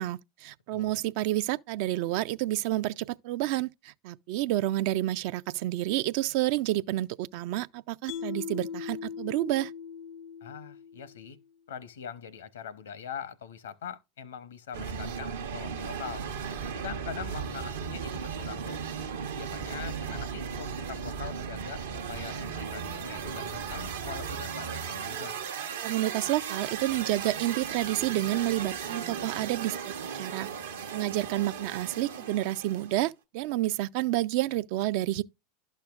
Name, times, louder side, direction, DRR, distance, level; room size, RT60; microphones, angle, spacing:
voice 1, 0.0-9.7 25.8-30.5 30.9-35.2, right 15 dB, 60° right, 0.3 m, -29 dB
Mallet percussion, 8.1-11.4, left 7 dB, 55° left, 0.5 m, -39 dB
voice 2, 10.4-11.4 11.7-16.3 16.7-18.8 19.4-25.4, left 7 dB, 75° left, 0.8 m, -42 dB
sound 1, 14.7-33.0, right 6 dB, 80° right, 0.9 m, -36 dB
11.5 x 6.4 x 2.4 m
hypercardioid pair, 90°, 0 cm